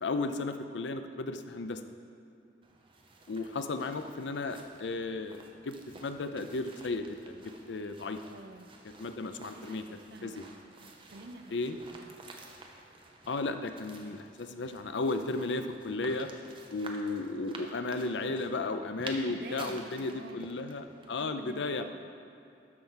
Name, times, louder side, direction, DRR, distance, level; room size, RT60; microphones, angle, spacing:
voice 1, 0.0-1.8 3.3-5.8 6.0-8.2 8.8-9.8 10.2-10.5 11.5-11.8 13.3-16.3 16.7-21.9, left 3 dB, 85° left, 8 dB, 0.5 m, -34 dB
sound 1, 2.6-21.2, right 2 dB, 30° right, 0.8 m, -51 dB
voice 2, 8.3-8.8 9.3-9.8 10.1-10.5 10.8-11.5 12.0-12.1 19.3-20.4 21.2-22.0, right 2 dB, 60° right, 8 dB, 0.5 m, -49 dB
12.5 x 4.6 x 5.7 m, 2.7 s
head